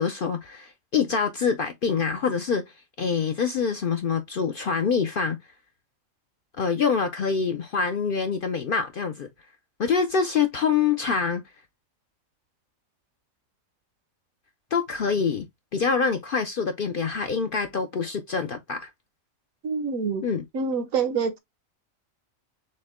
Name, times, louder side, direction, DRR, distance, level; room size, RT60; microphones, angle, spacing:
voice 1, 0.0-2.6 3.0-5.4 6.6-9.3 9.8-11.4 14.7-15.5 15.7-18.9 20.2-20.4, left 6 dB, 60° left, 0.6 m, -25 dB
voice 2, 19.6-20.2 20.5-21.4, right 5 dB, 80° right, 1.3 m, -26 dB
6.4 x 2.2 x 3.5 m
omnidirectional pair, 1.4 m